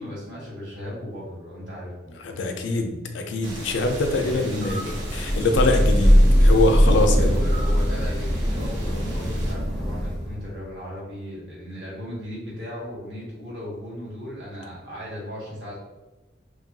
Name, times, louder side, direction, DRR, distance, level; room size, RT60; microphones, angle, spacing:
voice 1, 0.0-2.2 4.2-5.0 6.8-15.8, left 1 dB, 65° right, -6 dB, 1.2 m, -36 dB
voice 2, 2.2-4.9 5.2-7.4, left 2 dB, 70° left, 4 dB, 0.4 m, -24 dB
sound 1, 3.4-9.5, equal, 90° right, 0.8 m, -35 dB
Thunder / Rain, 4.7-10.4, equal, ahead, 0.4 m, -20 dB
2.9 x 2.2 x 2.6 m, 1.1 s
head